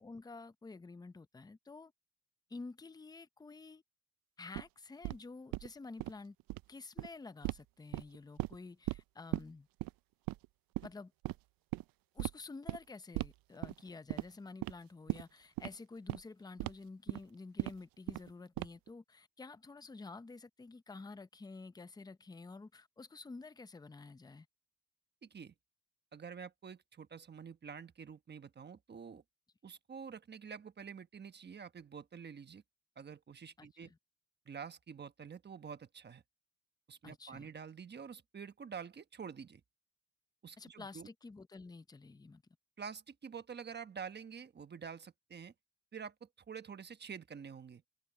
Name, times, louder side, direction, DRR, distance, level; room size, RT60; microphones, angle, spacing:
voice 1, 0.0-1.9 2.5-3.8 4.4-6.4 6.7-9.7 10.8-11.1 12.1-24.5 33.6-34.0 37.0-37.5 40.6-42.4, left 3 dB, 10° left, 0.6 m, -50 dB
sound 1, 4.5-4.6 5.0-5.2 5.5-5.7 6.0-6.1 6.4-6.6 7.0-7.1 7.4-7.6 7.9-8.6 8.9-9.0 9.3-9.4 9.8-9.9 10.3-10.5 10.8-10.9 11.2-11.4 11.7-11.8 12.2-12.3 12.7-12.8 13.2-13.3 13.6-13.8 14.1-14.3 14.6-14.7 15.1-15.2 15.6-15.7 16.1-16.2 16.6-16.7 17.1-17.2 17.6-17.7 18.1-18.3 18.6-18.9, right 18 dB, 80° right, 0.5 m, -37 dB
voice 2, 25.2-25.5 26.1-29.2 29.6-32.6 33.0-33.9 34.5-36.2 36.9-39.6 40.4-41.1 42.8-45.5 45.9-47.8, right 6 dB, 30° right, 1.1 m, -48 dB
cardioid pair, 125°, 34 cm